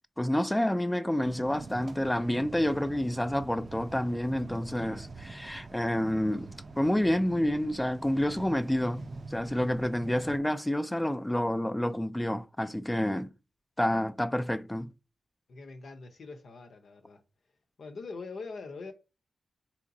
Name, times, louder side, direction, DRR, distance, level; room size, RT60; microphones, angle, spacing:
voice 1, 0.2-6.5 6.8-13.3 13.8-14.9, left 1 dB, 10° left, 0.3 m, -29 dB
sound 1, 1.2-10.4, right 3 dB, 50° right, 0.4 m, -45 dB
voice 2, 15.5-17.2 17.8-18.9, left 4 dB, 75° left, 0.7 m, -43 dB
3.7 x 2.9 x 2.6 m
cardioid pair, 55°, 0 cm